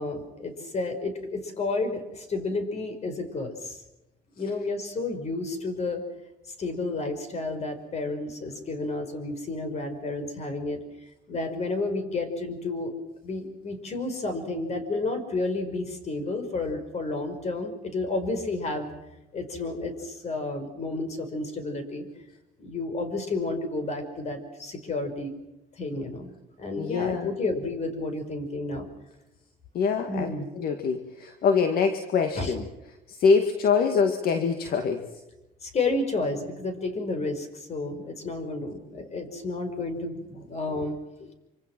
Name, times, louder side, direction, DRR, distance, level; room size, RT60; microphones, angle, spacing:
voice 1, 0.0-3.8 4.4-6.0 6.5-10.8 11.3-12.9 13.2-18.9 19.3-22.0 22.6-25.3 25.8-26.3 26.6-28.9 30.1-30.5 32.4-32.6 35.6-41.0, left 2 dB, 40° left, 8 dB, 5.3 m, -31 dB
voice 2, 26.8-27.3 29.7-30.3 30.6-32.6 33.1-35.1, left 5 dB, 65° left, 6 dB, 2.0 m, -24 dB
26.5 x 25.5 x 6.1 m, 0.96 s
cardioid pair, 110°, 17 cm